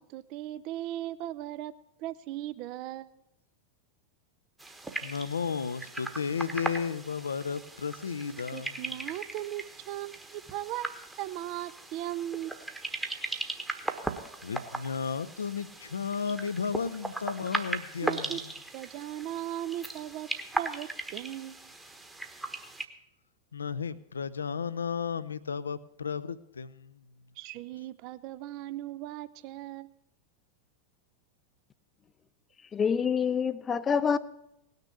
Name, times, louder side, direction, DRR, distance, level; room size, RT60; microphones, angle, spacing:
voice 1, 0.0-1.7 2.0-3.1 8.5-12.7 18.0-18.4 18.7-20.3 20.5-21.7 27.4-29.9, right 14 dB, 40° right, 0.6 m, -38 dB
sound 1, 4.6-22.9, right 2 dB, 10° right, 1.2 m, -38 dB
voice 2, 5.0-9.0 14.4-18.5 23.5-27.1, left 6 dB, 70° left, 0.6 m, -34 dB
voice 3, 32.7-34.2, left 6 dB, 20° left, 0.6 m, -26 dB
18.0 x 6.7 x 8.4 m
figure-of-eight pair, 90°, 0 cm